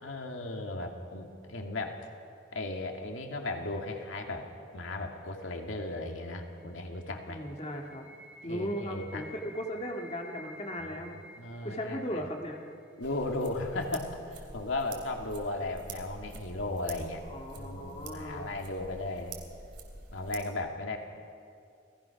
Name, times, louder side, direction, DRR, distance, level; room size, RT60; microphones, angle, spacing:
voice 1, 0.0-2.0 2.5-4.5 4.7-7.4 8.5-9.2 10.8-12.3 13.0-17.2 17.6-19.3 20.1-21.0, left 2 dB, 90° left, 3 dB, 2.4 m, -36 dB
sound 1, 5.1-13.7, equal, 10° right, 2.2 m, -53 dB
voice 2, 7.3-8.1 8.4-11.2 11.6-12.6 17.3-18.5, equal, 35° left, 1 dB, 2.0 m, -37 dB
sound 2, 13.0-20.4, right 3 dB, 65° right, 3.4 m, -47 dB
29.0 x 19.5 x 5.9 m, 2.4 s
head